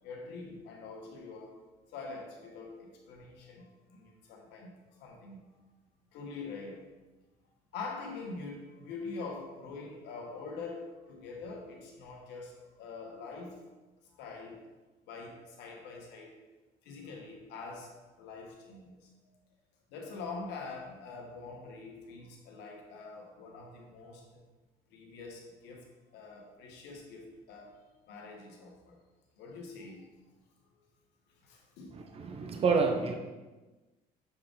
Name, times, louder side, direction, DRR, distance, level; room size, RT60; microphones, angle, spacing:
voice 1, 0.0-1.6 1.9-4.7 5.0-5.4 6.1-6.9 7.7-13.6 14.1-14.7 15.1-16.3 16.8-19.1 19.9-24.4 24.9-25.9 26.1-27.7 28.1-29.0 29.4-30.1 31.4-32.0, left 4 dB, 90° left, 0 dB, 1.2 m, -44 dB
voice 2, 31.9-33.1, right 4 dB, 35° right, 4 dB, 0.7 m, -28 dB
6.8 x 3.7 x 3.9 m, 1.2 s
cardioid pair, 110°, 17 cm